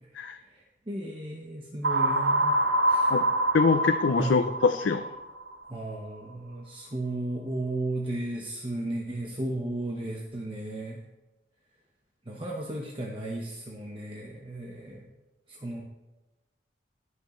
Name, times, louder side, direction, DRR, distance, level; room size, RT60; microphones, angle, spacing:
voice 1, 0.5-3.2 4.2-4.4 5.7-11.0 12.3-15.1 15.5-15.8, right 1 dB, 30° right, -1 dB, 1.0 m, -35 dB
sound 1, 1.8-5.7, right 1 dB, 80° right, 0.9 m, -26 dB
voice 2, 3.5-5.0, left 4 dB, 85° left, 8 dB, 0.5 m, -24 dB
18.5 x 6.3 x 3.2 m, 1.1 s
head